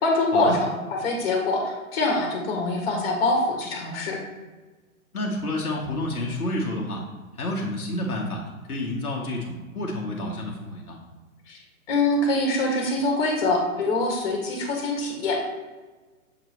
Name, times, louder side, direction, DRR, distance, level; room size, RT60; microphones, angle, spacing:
voice 1, 0.0-4.2 11.5-11.6 11.9-15.5, left 2 dB, 40° left, 0 dB, 1.7 m, -24 dB
voice 2, 5.1-7.0 7.3-8.4 8.7-11.0, left 1 dB, 85° left, -1 dB, 1.3 m, -29 dB
7.2 x 3.1 x 4.5 m, 1.3 s
hypercardioid pair, 130°, 43 cm